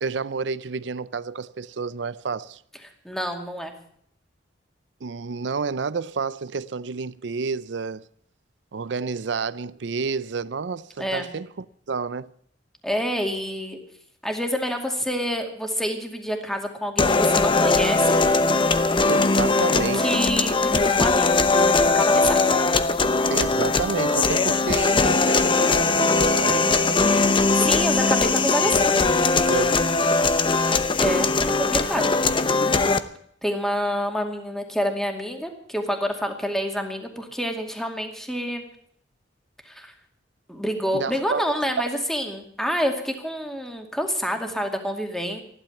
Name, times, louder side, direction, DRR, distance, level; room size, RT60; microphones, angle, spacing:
voice 1, 0.0-2.6 5.0-8.0 8.7-12.3 19.1-20.2 23.3-27.2 27.5-27.7 29.5-29.8 30.6-30.8 40.9-41.4, right 5 dB, 80° right, 0.5 m, -30 dB
voice 2, 3.0-3.7 11.0-11.3 12.8-13.8 14.2-18.2 19.7-22.5 27.5-28.9 31.0-31.3 31.6-32.1 33.4-38.6 39.6-39.9 40.5-45.4, equal, ahead, 2.3 m, -27 dB
sound 1, 17.0-33.0, left 3 dB, 30° left, 0.8 m, -20 dB
15.0 x 12.0 x 7.2 m
head